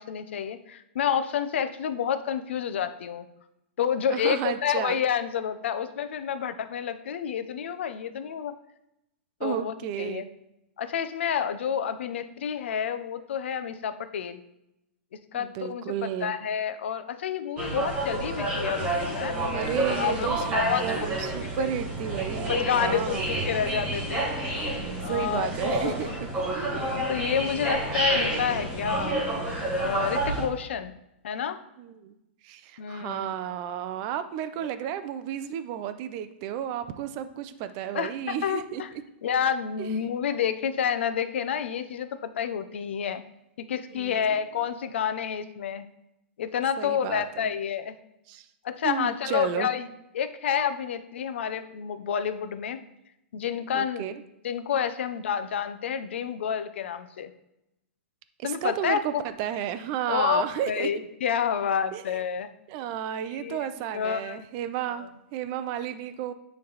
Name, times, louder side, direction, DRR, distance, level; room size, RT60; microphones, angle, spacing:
voice 1, 0.0-3.3 3.8-8.5 9.4-10.2 10.8-14.4 15.3-19.4 19.9-20.3 20.5-21.1 21.6-21.7 22.5-23.2 23.5-24.2 25.0-25.5 25.8-26.1 26.7-29.1 29.8-30.9 31.2-31.6 32.8-33.3 37.9-38.9 39.2-43.2 43.6-45.9 46.4-47.9 48.6-52.8 53.3-54.1 54.4-57.3 58.4-59.0 60.1-62.5 63.3-63.6 63.9-64.4, left 8 dB, 70° left, 10 dB, 0.6 m, -29 dB
voice 2, 4.1-5.0 9.4-10.3 15.3-16.3 19.5-23.3 25.0-26.1 26.5-27.0 27.7-27.8 31.8-32.2 32.4-38.8 39.8-39.9 43.9-44.3 46.8-47.5 48.3-48.5 48.8-49.7 53.7-54.1 58.4-61.0 61.9-62.2 62.7-66.3, right 10 dB, 30° right, 11 dB, 0.4 m, -32 dB
sound 1, 17.6-30.5, right 1 dB, 15° right, 1.8 m, -29 dB
9.4 x 3.3 x 4.0 m, 0.86 s
hypercardioid pair, 165°, 6 cm